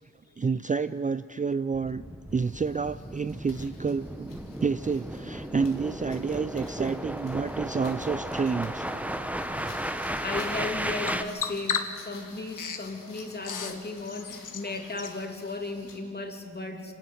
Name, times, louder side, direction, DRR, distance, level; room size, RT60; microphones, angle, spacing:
voice 1, 0.4-2.0 2.3-8.9 9.5-9.8, right 5 dB, 25° right, 13 dB, 0.4 m, -29 dB
sound 1, 1.7-11.2, right 1 dB, 5° right, 1.1 m, -34 dB
sound 2, 2.4-16.1, left 4 dB, 85° left, 3.4 m, -53 dB
Bird vocalization bird call bird song, 9.6-15.2, left 6 dB, 70° left, 1.6 m, -37 dB
voice 2, 9.7-16.9, left 3 dB, 30° left, 4 dB, 2.9 m, -36 dB
26.0 x 13.0 x 9.4 m, 2.5 s
cardioid pair, 75°, 32 cm